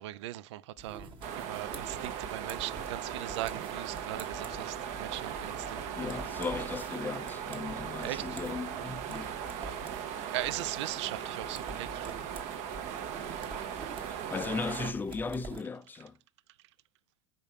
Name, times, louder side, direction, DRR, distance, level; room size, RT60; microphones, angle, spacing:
voice 1, 0.0-5.8 6.5-6.7 8.0-8.4 10.3-12.3, right 15 dB, 75° right, 0.4 m, -39 dB
sound 1, 0.8-15.6, right 2 dB, 35° right, 1.2 m, -47 dB
sound 2, 1.2-14.9, right 9 dB, 50° right, 0.8 m, -38 dB
voice 2, 5.9-9.3 14.3-16.2, left 4 dB, 15° left, 0.4 m, -36 dB
5.2 x 3.6 x 5.6 m
hypercardioid pair, 110°, 15 cm